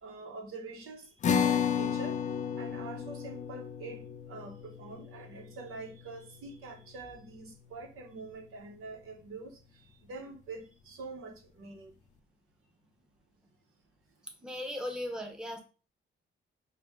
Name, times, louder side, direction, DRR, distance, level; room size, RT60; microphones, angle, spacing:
voice 1, 0.0-2.2 2.6-9.6 10.1-11.9, right 3 dB, 90° right, 1.1 m, -45 dB
sound 1, 1.2-7.9, left 7 dB, 35° left, 0.4 m, -34 dB
voice 2, 14.4-15.6, left 1 dB, 5° right, 0.7 m, -37 dB
5.8 x 2.2 x 3.6 m
cardioid pair, 150°, 21 cm